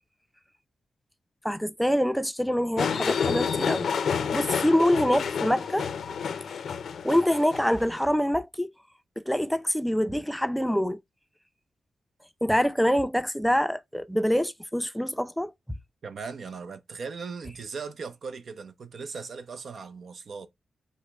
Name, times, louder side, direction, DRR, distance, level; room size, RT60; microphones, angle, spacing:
voice 1, 1.4-3.9 4.3-5.9 7.0-8.7 9.2-11.0 12.4-15.5, equal, ahead, 0.5 m, -25 dB
sound 1, 2.8-8.0, left 6 dB, 75° left, 0.5 m, -29 dB
voice 2, 16.0-20.5, right 5 dB, 65° right, 0.6 m, -38 dB
5.4 x 2.2 x 3.5 m
cardioid pair, 55°, 0 cm